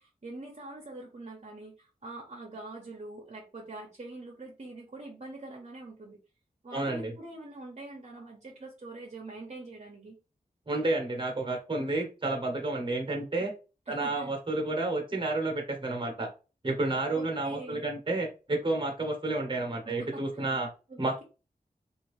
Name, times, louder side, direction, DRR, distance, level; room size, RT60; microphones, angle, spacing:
voice 1, 0.0-6.2 6.6-10.2 13.9-14.3 17.1-17.9 19.8-20.5 20.9-21.2, right 2 dB, 45° right, -1 dB, 0.9 m, -44 dB
voice 2, 6.7-7.1 10.7-13.5 13.9-16.3 16.6-20.7 21.0-21.2, right 2 dB, 30° right, 3 dB, 1.1 m, -30 dB
2.7 x 2.6 x 3.2 m, 0.32 s
wide cardioid pair, 55°, 16 cm